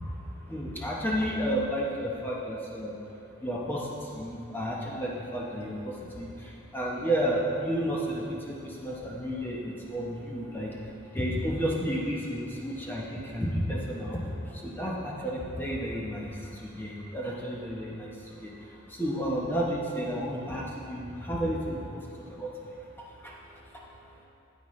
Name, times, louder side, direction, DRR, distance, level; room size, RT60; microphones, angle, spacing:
voice 1, 0.0-3.0 3.4-22.7 23.2-23.8, equal, 10° left, -4 dB, 0.8 m, -32 dB
9.3 x 9.1 x 3.2 m, 2.7 s
head